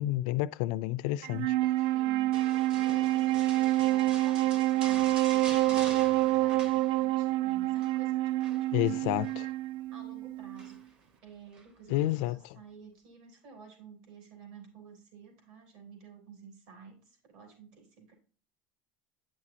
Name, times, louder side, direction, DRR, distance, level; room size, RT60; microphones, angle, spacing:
voice 1, 0.0-1.6 8.7-9.5 11.9-12.4, left 16 dB, 60° left, 0.3 m, -30 dB
Wind instrument woodwind instrument, 1.2-10.7, right 16 dB, 85° right, 0.4 m, -27 dB
voice 2, 1.9-9.2 9.9-18.1, right 5 dB, 60° right, 3.3 m, -52 dB
sound 1, 2.3-7.3 7.6-8.0 8.4-9.4 10.6-11.0 11.5-11.7, right 3 dB, 20° right, 0.7 m, -45 dB
9.0 x 6.1 x 2.8 m
cardioid pair, 180°, 5 cm